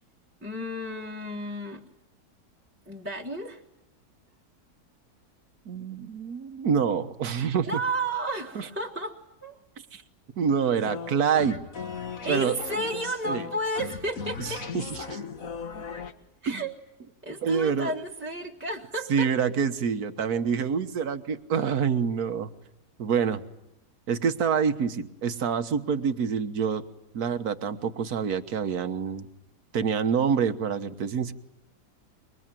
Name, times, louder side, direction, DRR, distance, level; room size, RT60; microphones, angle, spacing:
voice 1, 0.4-1.8 2.8-3.6 7.7-9.6 12.2-14.7 16.4-16.8 17.2-19.3, right 1 dB, 10° right, -1 dB, 1.6 m, -32 dB
voice 2, 5.7-7.8 8.6-8.7 9.9-10.0 10.4-11.6 12.3-12.6 13.3-13.5 14.4-15.2 16.5-16.6 17.4-17.9 19.1-22.5 23.0-23.4 24.1-26.8 27.1-29.3 29.7-31.3, right 6 dB, 75° right, 9 dB, 1.7 m, -26 dB
sound 1, 10.8-16.1, left 5 dB, 60° left, 2.0 m, -37 dB
26.0 x 23.5 x 9.1 m, 0.86 s
omnidirectional pair, 1.6 m